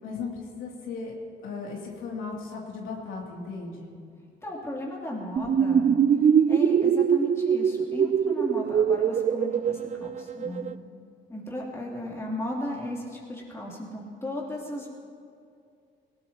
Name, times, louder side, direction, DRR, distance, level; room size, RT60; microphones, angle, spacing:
voice 1, 0.0-1.1 1.4-3.9, left 4 dB, 90° left, -3 dB, 2.8 m, -36 dB
voice 2, 4.4-5.9 6.5-10.7 11.3-14.9, left 1 dB, 15° left, -4 dB, 3.1 m, -35 dB
sound 1, 5.4-10.7, right 7 dB, 40° right, 0.4 m, -23 dB
18.5 x 18.5 x 3.0 m, 2.5 s
cardioid pair, 90°, 20 cm